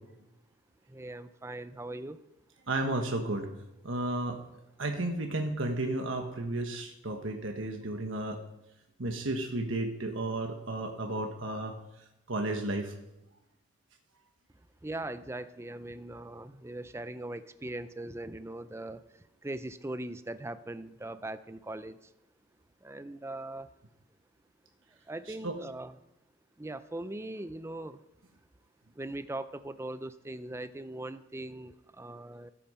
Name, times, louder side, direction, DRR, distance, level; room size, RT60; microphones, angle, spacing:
voice 1, 0.9-2.2 14.8-22.1 22.8-23.7 25.1-25.9 26.6-28.0 29.0-32.5, right 1 dB, 15° right, 13 dB, 0.4 m, -40 dB
voice 2, 2.7-3.5 3.8-4.4 4.8-8.4 9.0-11.7 12.3-12.9 25.4-25.6, right 2 dB, 75° right, 3 dB, 1.3 m, -33 dB
14.0 x 8.6 x 5.6 m, 0.89 s
head